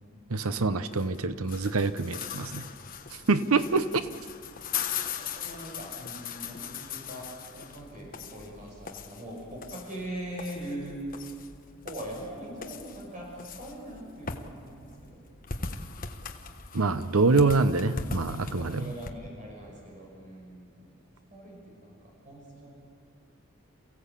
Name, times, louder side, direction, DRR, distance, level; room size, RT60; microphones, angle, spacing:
voice 1, 0.3-2.6 3.3-3.9 16.7-18.9, right 3 dB, 85° right, 12 dB, 0.9 m, -25 dB
sound 1, 0.9-19.1, left 6 dB, 40° left, 1.3 m, -40 dB
voice 2, 5.2-11.0 11.8-15.2 15.6-15.9 18.6-20.9 21.3-22.0 22.2-22.8, right 1 dB, 35° right, -2 dB, 6.0 m, -42 dB
28.5 x 16.0 x 8.4 m, 2.1 s
head